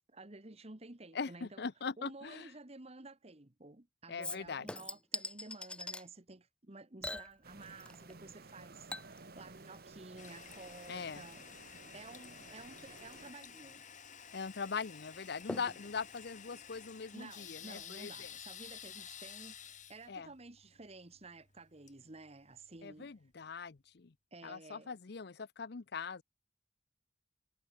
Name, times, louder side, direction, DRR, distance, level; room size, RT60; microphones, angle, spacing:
voice 1, 0.1-1.6 2.0-11.4 11.9-13.9 17.1-23.1 24.3-24.9, right 2 dB, 35° right, 1.6 m, -53 dB
voice 2, 1.1-2.5 4.1-4.7 10.9-11.2 14.3-18.3 20.1-20.3 22.8-24.1 24.4-26.2, left 5 dB, 65° left, 0.7 m, -41 dB
Chink clink / Liquid, 4.2-6.1 7.0-8.2 8.4-17.5 17.8-17.9, left 2 dB, 5° left, 0.5 m, -47 dB
sound 1, 7.4-13.3, right 3 dB, 60° right, 1.6 m, -55 dB
Toilet flush, 10.2-22.8, left 8 dB, 45° left, 4.7 m, -52 dB
head